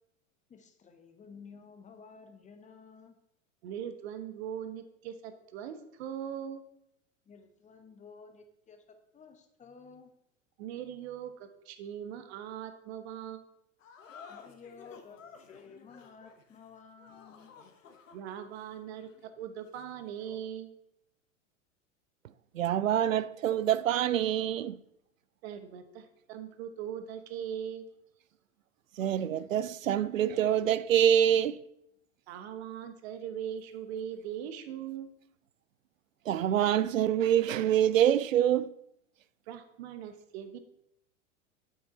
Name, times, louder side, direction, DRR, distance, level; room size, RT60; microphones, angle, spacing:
voice 1, 0.5-3.1 7.3-8.8 9.1-10.1 14.3-17.5, left 5 dB, 20° left, 1.0 m, -53 dB
voice 2, 3.6-6.6 10.6-13.4 18.1-20.7 25.4-27.8 32.3-35.1 39.5-40.6, right 9 dB, 55° right, 1.0 m, -40 dB
sound 1, 13.8-20.5, left 6 dB, 70° left, 1.1 m, -54 dB
voice 3, 22.5-24.8 29.0-31.6 36.3-38.7, right 10 dB, 80° right, 0.5 m, -26 dB
8.0 x 6.1 x 4.1 m
figure-of-eight pair, 90°, 39 cm